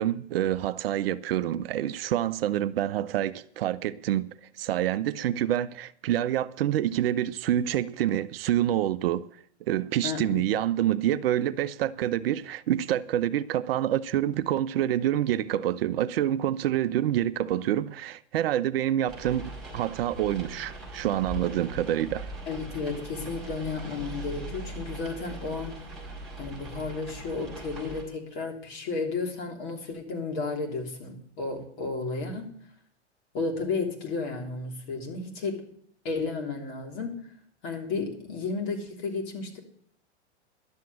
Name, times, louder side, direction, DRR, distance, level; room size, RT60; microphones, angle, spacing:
voice 1, 0.0-4.3 4.6-9.3 9.7-22.3, right 12 dB, 55° right, 0.6 m, -27 dB
voice 2, 10.0-10.4 22.5-25.8 26.4-32.5 33.3-35.6 36.0-37.2 37.6-39.6, left 4 dB, 45° left, 3.3 m, -33 dB
sound 1, 19.1-28.0, right 2 dB, ahead, 5.5 m, -40 dB
11.5 x 7.6 x 8.6 m
figure-of-eight pair, 105°, 35 cm